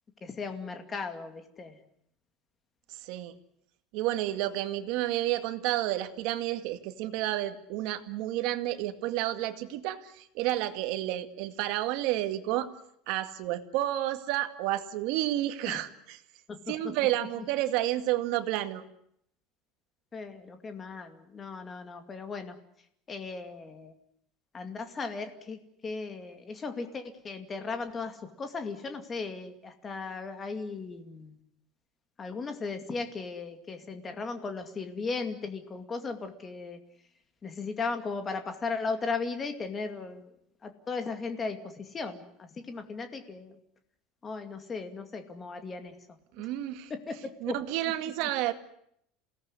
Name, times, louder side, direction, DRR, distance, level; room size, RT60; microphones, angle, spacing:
voice 1, 0.2-1.8 15.7-15.8 16.5-16.9 17.4-17.5 20.1-22.6 23.1-23.9 24.5-31.4 32.2-36.8 37.4-40.3 40.6-43.6 44.2-46.0 46.9-47.6, left 4 dB, 20° left, 7 dB, 2.3 m, -37 dB
voice 2, 3.0-3.3 3.9-12.7 13.1-16.2 16.7-18.8 46.3-46.9 47.4-48.5, right 14 dB, 55° right, 8 dB, 2.2 m, -30 dB
28.0 x 18.0 x 9.8 m, 0.72 s
cardioid pair, 170°, 0 cm